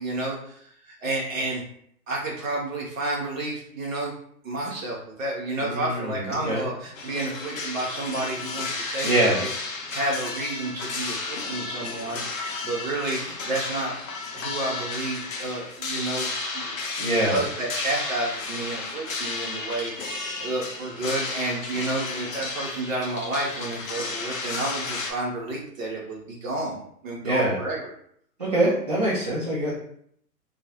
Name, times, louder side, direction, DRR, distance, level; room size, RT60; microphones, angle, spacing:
voice 1, 0.0-1.6 2.1-4.1 4.4-9.5 9.9-13.9 14.3-16.3 16.5-16.8 17.3-27.9, right 2 dB, 55° right, -3 dB, 0.7 m, -30 dB
voice 2, 5.6-6.2 6.4-6.6 9.0-9.4 17.0-17.4 27.2-27.6 28.4-29.7, right 1 dB, 30° right, -8 dB, 0.4 m, -23 dB
sound 1, 6.9-25.1, left 3 dB, 55° left, 0.6 m, -33 dB
2.2 x 2.0 x 2.8 m, 0.67 s
figure-of-eight pair, 125°, 48 cm